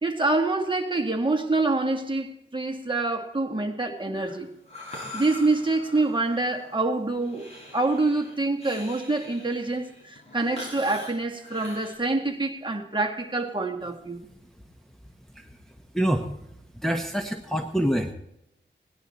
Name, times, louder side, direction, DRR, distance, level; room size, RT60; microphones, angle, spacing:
voice 1, 0.0-4.5 5.1-7.5 7.7-14.2, right 2 dB, 25° right, 1.8 m, -26 dB
Breathing, 4.1-12.0, left 1 dB, 30° left, 6.3 m, -43 dB
voice 2, 15.9-16.3 16.8-18.1, equal, ahead, 1.1 m, -26 dB
18.0 x 11.0 x 4.3 m
wide cardioid pair, 60°, 20 cm